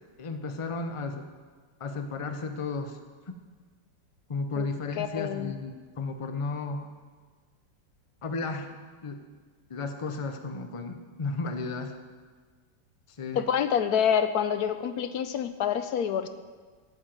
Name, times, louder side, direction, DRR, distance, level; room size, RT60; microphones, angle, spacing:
voice 1, 0.2-1.3 1.8-3.0 4.3-6.9 8.2-8.7 9.0-9.2 9.7-12.0 13.2-13.4, left 3 dB, 40° left, 7 dB, 0.4 m, -33 dB
voice 2, 5.0-5.5 13.4-16.3, left 8 dB, 70° left, 10 dB, 1.0 m, -27 dB
9.9 x 8.9 x 7.4 m, 1.5 s
omnidirectional pair, 1.9 m